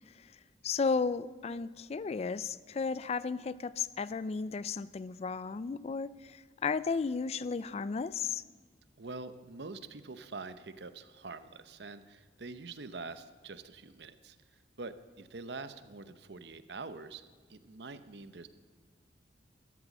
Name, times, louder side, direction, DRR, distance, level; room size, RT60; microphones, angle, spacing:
voice 1, 0.1-8.4, left 5 dB, 35° left, 18 dB, 0.3 m, -34 dB
voice 2, 9.0-14.4 14.8-17.2 17.5-18.5, right 3 dB, 65° right, 11 dB, 0.8 m, -45 dB
13.0 x 12.5 x 7.2 m, 1.5 s
head